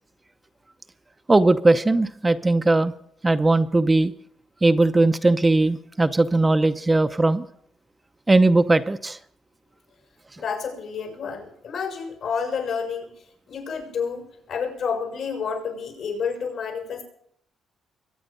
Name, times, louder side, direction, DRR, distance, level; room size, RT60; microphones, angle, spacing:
voice 1, 1.3-2.9 3.2-4.1 4.6-7.5 8.3-9.2, right 2 dB, 20° right, 9 dB, 0.6 m, -19 dB
voice 2, 10.4-13.1 13.5-17.0, left 6 dB, 70° left, 3 dB, 6.7 m, -29 dB
23.0 x 9.1 x 5.4 m, 0.69 s
cardioid pair, 90°, 0 cm